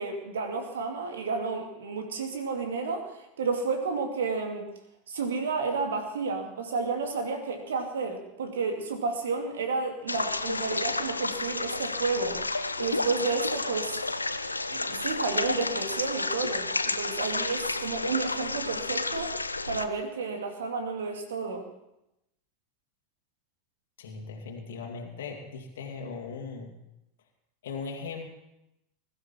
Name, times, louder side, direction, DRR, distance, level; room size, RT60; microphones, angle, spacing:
voice 1, 0.0-4.7 5.1-12.4 12.8-14.0 14.7-19.4 19.7-21.7, right 4 dB, 65° right, 4 dB, 2.4 m, -31 dB
sound 1, 10.1-19.9, left 3 dB, 85° left, 0.6 m, -31 dB
voice 2, 24.0-26.7 27.6-28.3, left 5 dB, 60° left, 1 dB, 2.2 m, -38 dB
21.0 x 12.5 x 4.4 m, 0.86 s
figure-of-eight pair, 85°, 0 cm